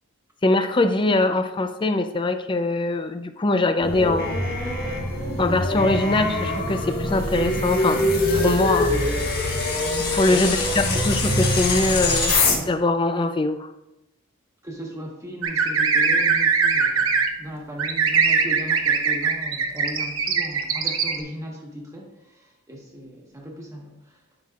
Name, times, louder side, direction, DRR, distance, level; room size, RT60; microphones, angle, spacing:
voice 1, 0.4-4.4 5.4-8.9 10.1-12.4 12.7-13.7, left 2 dB, 25° left, 8 dB, 0.4 m, -22 dB
sound 1, 3.8-12.6, left 2 dB, 45° left, 1.4 m, -23 dB
voice 2, 10.3-11.0 14.6-24.2, equal, 15° right, -1 dB, 1.3 m, -37 dB
sound 2, 15.4-17.3 17.8-21.2, right 5 dB, 80° right, 0.9 m, -21 dB
11.0 x 5.7 x 2.4 m, 0.89 s
head